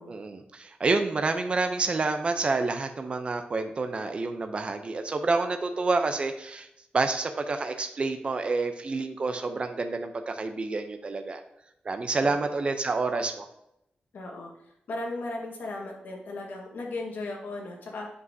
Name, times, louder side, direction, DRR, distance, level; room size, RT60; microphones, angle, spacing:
voice 1, 0.1-6.7 6.9-11.4 11.9-13.5, right 3 dB, 35° right, 6 dB, 0.6 m, -28 dB
voice 2, 12.2-12.5 14.1-14.5 14.9-18.1, left 2 dB, 80° left, 0 dB, 1.6 m, -36 dB
7.9 x 5.4 x 2.7 m, 0.81 s
wide cardioid pair, 160°, 3 cm